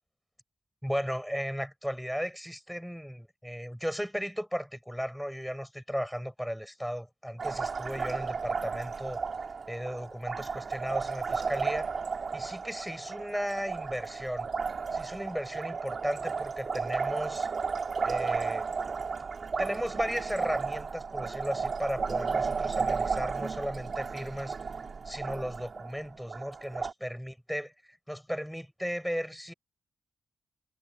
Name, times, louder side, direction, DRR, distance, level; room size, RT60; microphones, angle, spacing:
voice 1, 0.8-9.2 9.7-11.9 12.3-14.5 14.9-17.5 18.0-18.7 19.6-24.6 25.1-27.7 28.1-29.5, equal, ahead, 5.9 m, -35 dB
Liquid, 7.4-26.9, right 5 dB, 40° right, 3.6 m, -33 dB
wide cardioid pair, 140°, 0 cm